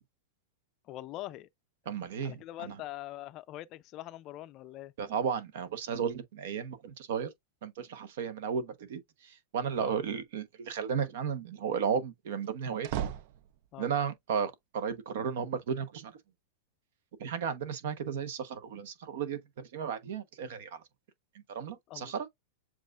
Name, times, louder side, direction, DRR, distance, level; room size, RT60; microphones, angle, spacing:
voice 1, 0.8-1.5 2.2-4.9 9.8-9.9 13.7-13.9 21.9-22.3, left 15 dB, 35° left, 0.4 m, -43 dB
voice 2, 1.9-2.8 5.0-7.3 7.6-13.1 13.8-16.1 17.2-20.8 21.3-22.3, right 7 dB, 70° right, 1.0 m, -34 dB
sound 1, 12.4-13.9, right 10 dB, 50° right, 0.4 m, -38 dB
7.4 x 2.5 x 2.4 m
supercardioid pair, 145°, 0 cm